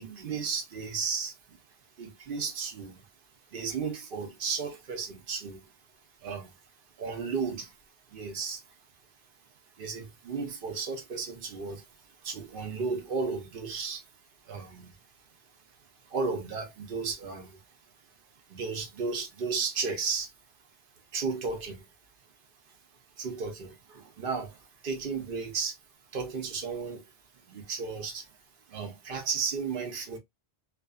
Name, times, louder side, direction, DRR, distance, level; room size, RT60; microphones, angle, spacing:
voice 1, 0.0-1.6 2.0-3.0 3.5-5.7 6.2-6.6 7.0-7.7 8.1-8.6 9.8-14.1 14.4-15.0 16.0-17.6 18.5-20.3 21.1-21.9 22.7-22.8 23.2-25.8 26.1-27.1 27.4-28.3 28.7-30.2, right 5 dB, 55° right, 0.8 m, -34 dB
2.4 x 2.4 x 2.3 m
omnidirectional pair, 1.2 m